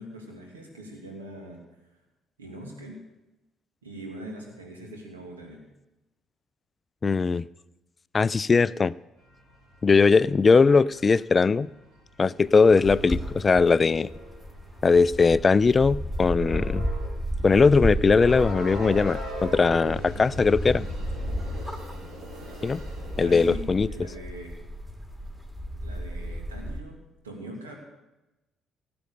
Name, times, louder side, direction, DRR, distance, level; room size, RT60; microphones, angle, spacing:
voice 1, 0.0-1.6 2.4-3.0 3.8-5.6 23.2-24.5 25.8-27.0 27.2-27.7, right 1 dB, 80° right, 1 dB, 2.5 m, -42 dB
voice 2, 7.0-7.5 8.1-8.9 9.8-11.7 12.2-14.1 14.8-16.9 17.4-20.9 22.6-22.8 23.2-23.9, left 4 dB, 30° left, 21 dB, 0.4 m, -20 dB
sound 1, 9.3-23.6, equal, 55° right, 5.3 m, -40 dB
sound 2, 12.4-26.8, equal, 10° right, 2.9 m, -34 dB
18.0 x 7.8 x 6.8 m, 1.0 s
figure-of-eight pair, 45°, 0 cm